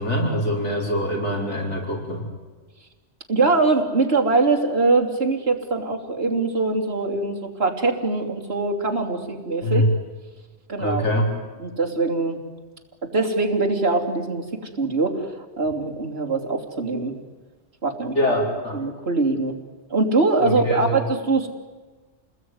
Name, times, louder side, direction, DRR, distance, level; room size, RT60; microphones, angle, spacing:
voice 1, 0.0-2.3 9.6-9.9 10.8-11.3 18.2-18.8 20.4-21.0, equal, 70° left, -1 dB, 5.3 m, -24 dB
voice 2, 3.3-9.9 10.7-11.1 11.6-12.4 13.0-15.3 15.6-17.1 17.8-18.2 18.7-19.6 19.9-21.5, right 3 dB, 55° right, 0 dB, 3.4 m, -22 dB
28.5 x 20.5 x 9.6 m, 1.3 s
omnidirectional pair, 1.2 m